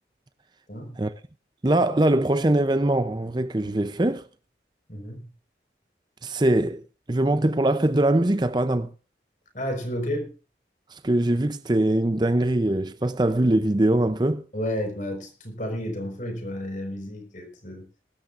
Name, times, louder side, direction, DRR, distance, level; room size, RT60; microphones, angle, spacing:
voice 1, 1.6-4.2 6.2-6.8 7.1-8.9 10.9-14.4, right 1 dB, 25° right, 0.6 m, -22 dB
voice 2, 4.9-5.2 9.5-10.3 14.5-17.8, equal, 45° left, 4.9 m, -31 dB
22.0 x 12.5 x 2.5 m
head